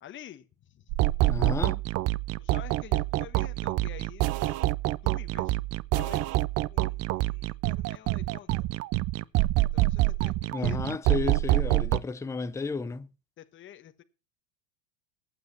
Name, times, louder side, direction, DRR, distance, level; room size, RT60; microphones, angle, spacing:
voice 1, 0.0-0.9 1.5-1.6 2.4-4.6 5.0-5.6 5.9-6.4 6.7-8.7 9.5-11.0 13.4-14.0, left 11 dB, 30° left, 1.3 m, -48 dB
sound 1, 0.9-12.0, right 18 dB, 40° right, 0.6 m, -26 dB
voice 2, 1.3-1.8 10.5-13.1, left 4 dB, 5° left, 0.7 m, -32 dB
17.5 x 9.1 x 4.2 m
supercardioid pair, 115°, 41 cm